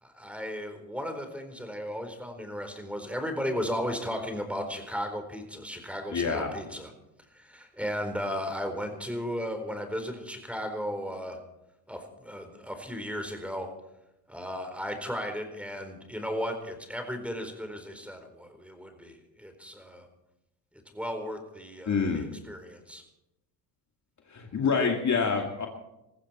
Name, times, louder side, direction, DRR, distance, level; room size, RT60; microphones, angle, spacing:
voice 1, 0.0-6.9 7.3-11.4 11.9-13.7 14.3-20.1 20.9-23.0, equal, 5° right, 6 dB, 4.2 m, -35 dB
voice 2, 6.1-6.5 21.9-22.3 24.3-25.7, left 5 dB, 35° left, 2 dB, 2.4 m, -26 dB
20.5 x 15.0 x 4.4 m, 0.90 s
hypercardioid pair, 70°, 49 cm